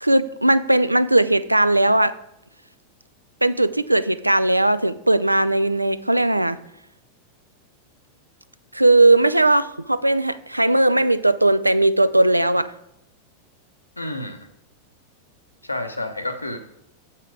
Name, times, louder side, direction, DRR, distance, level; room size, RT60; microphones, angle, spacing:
voice 1, 0.0-2.1 3.4-6.6 8.7-12.7, right 2 dB, 85° right, 15 dB, 0.3 m, -18 dB
voice 2, 14.0-14.5 15.6-16.6, left 2 dB, 85° left, 7 dB, 0.8 m, -29 dB
8.0 x 5.7 x 4.7 m, 0.81 s
figure-of-eight pair, 90°, 0 cm